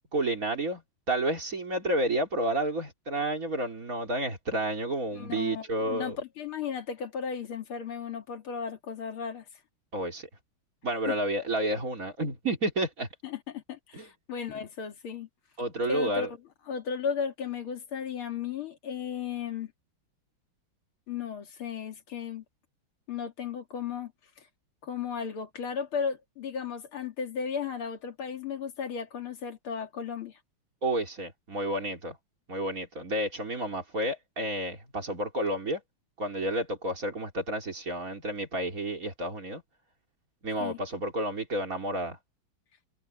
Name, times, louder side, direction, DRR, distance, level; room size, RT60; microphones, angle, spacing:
voice 1, 0.1-0.8 1.1-6.2 9.9-10.3 10.8-13.1 13.9-14.1 15.6-16.3 30.8-32.2 32.5-35.8 36.2-39.6 40.4-42.2, right 1 dB, 40° right, 3.7 m, -30 dB
voice 2, 5.1-9.4 11.1-11.2 13.2-15.3 15.9-16.3 16.7-19.7 21.1-22.4 23.1-24.1 24.8-30.4 40.6-40.8, left 6 dB, 80° left, 2.9 m, -35 dB
omnidirectional pair, 2.3 m